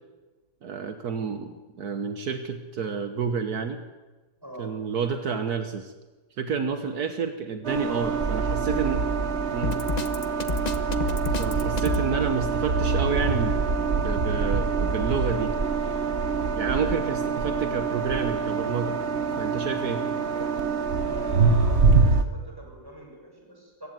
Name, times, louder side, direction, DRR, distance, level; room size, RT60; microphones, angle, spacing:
voice 1, 0.6-3.8 4.6-5.9 6.4-9.1 9.5-9.8 11.4-15.5 16.6-19.0 19.4-20.0, right 5 dB, 70° right, 8 dB, 1.7 m, -29 dB
voice 2, 4.4-4.8 6.5-6.6 7.7-8.1 16.6-16.9 21.0-23.9, right 1 dB, 15° right, -1 dB, 7.0 m, -43 dB
sound 1, 7.6-22.2, right 4 dB, 45° right, 1.5 m, -25 dB
Drum kit, 9.6-12.0, left 3 dB, 30° left, 1.1 m, -29 dB
25.0 x 15.5 x 9.2 m, 1.2 s
omnidirectional pair, 1.7 m